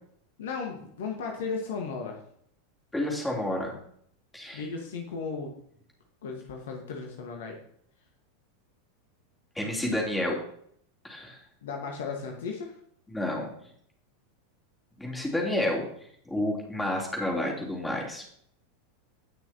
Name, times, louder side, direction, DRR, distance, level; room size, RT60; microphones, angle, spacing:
voice 1, 0.4-2.2 4.5-5.5 6.2-7.6 11.6-12.8, left 5 dB, 60° left, 2 dB, 1.7 m, -35 dB
voice 2, 2.9-3.7 4.3-4.6 9.6-10.4 11.0-11.4 13.1-13.5 15.0-15.9 16.3-18.2, left 1 dB, 5° left, -2 dB, 3.5 m, -30 dB
18.0 x 6.1 x 3.0 m, 0.65 s
figure-of-eight pair, 85°, 0 cm